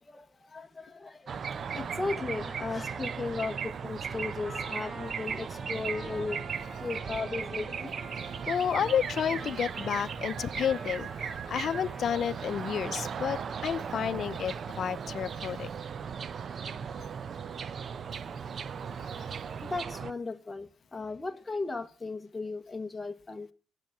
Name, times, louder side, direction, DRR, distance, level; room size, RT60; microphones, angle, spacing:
voice 1, 0.0-1.4 1.7-6.4 6.8-8.0 19.6-23.5, left 3 dB, 20° left, 1.2 m, -36 dB
sound 1, 1.3-20.1, right 6 dB, 50° right, 0.7 m, -37 dB
Trumpet, 4.1-12.3, right 1 dB, 20° right, 4.4 m, -48 dB
voice 2, 8.5-15.7, left 8 dB, 60° left, 0.7 m, -31 dB
17.5 x 7.8 x 8.8 m
cardioid pair, 90°, 0 cm